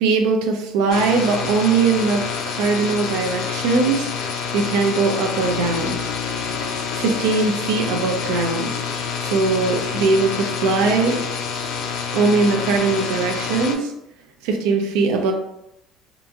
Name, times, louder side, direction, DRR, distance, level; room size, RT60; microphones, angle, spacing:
voice 1, 0.0-4.1 4.5-6.0 7.0-8.7 9.2-11.2 12.1-13.9 14.4-15.3, right 4 dB, 85° right, 3 dB, 0.5 m, -20 dB
sound 1, 0.9-13.7, left 6 dB, 65° left, 0.4 m, -27 dB
2.8 x 2.5 x 2.3 m, 0.82 s
cardioid pair, 170°, 0 cm